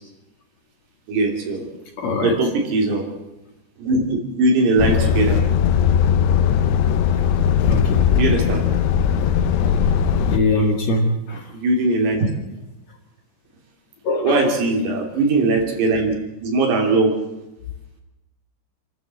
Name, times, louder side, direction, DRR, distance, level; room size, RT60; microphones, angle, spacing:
voice 1, 1.1-1.7 2.2-3.1 3.8-5.4 8.2-8.7 10.6-10.8 11.5-12.3 14.2-16.2 16.4-17.2, right 2 dB, 80° right, 2 dB, 5.2 m, -20 dB
voice 2, 2.0-2.4 7.6-8.0 10.3-11.4 14.0-14.5, left 2 dB, 50° left, 3 dB, 2.5 m, -22 dB
Truck, 4.8-10.4, left 8 dB, 80° left, 3.2 m, -18 dB
27.5 x 12.5 x 7.6 m, 0.93 s
omnidirectional pair, 4.8 m